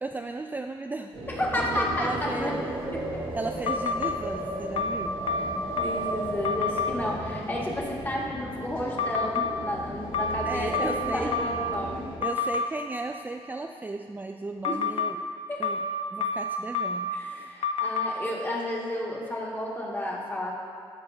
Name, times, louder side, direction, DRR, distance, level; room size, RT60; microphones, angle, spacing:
voice 1, 0.0-1.2 1.5-2.6 3.3-5.2 10.5-11.3 12.2-15.2 15.6-15.8 16.1-17.5, right 3 dB, 15° right, 4 dB, 0.3 m, -35 dB
sound 1, 1.1-12.2, right 1 dB, 55° right, 1.5 m, -35 dB
voice 2, 1.3-2.5 2.9-3.2 5.8-12.1 14.6-14.8 15.5-15.6 17.1-20.5, left 1 dB, 20° left, -4 dB, 2.0 m, -31 dB
sound 2, 3.7-4.1 4.8-6.1 6.4-6.9 9.0-9.5 10.1-11.8 12.2-12.7 14.6-15.1 15.6-17.2 17.6-18.1, left 4 dB, 70° left, 0.5 m, -28 dB
13.5 x 5.2 x 2.8 m, 2.2 s
cardioid pair, 70°, 10 cm